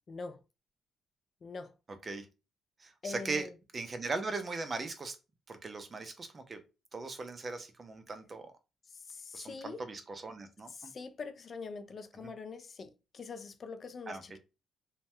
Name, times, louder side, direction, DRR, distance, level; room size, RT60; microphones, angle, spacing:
voice 1, 0.1-0.4 1.4-1.7 3.0-3.5 8.9-9.8 10.7-14.4, left 4 dB, 45° left, 0.3 m, -44 dB
voice 2, 2.8-3.5 3.7-5.2 5.5-6.6 6.9-8.5 9.3-10.9 12.2-12.3 14.1-14.2, right 3 dB, 35° right, 0.5 m, -39 dB
2.6 x 2.2 x 3.2 m
cardioid pair, 90°, 0 cm